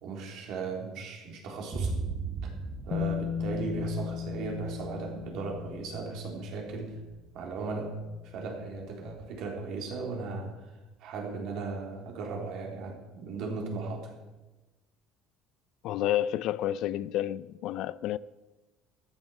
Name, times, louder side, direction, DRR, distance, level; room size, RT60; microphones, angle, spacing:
voice 1, 0.0-1.9 2.4-2.5 2.9-7.0 7.3-10.6 11.0-14.1, right 4 dB, 55° right, 3.7 m, -37 dB
Boom, 1.7-9.6, right 4 dB, 20° right, 1.2 m, -40 dB
Bass guitar, 2.9-6.8 8.0-8.1, left 9 dB, 30° left, 0.9 m, -36 dB
voice 2, 15.8-18.2, left 12 dB, 55° left, 0.4 m, -30 dB
14.0 x 11.0 x 6.4 m
cardioid pair, 165°, 0 cm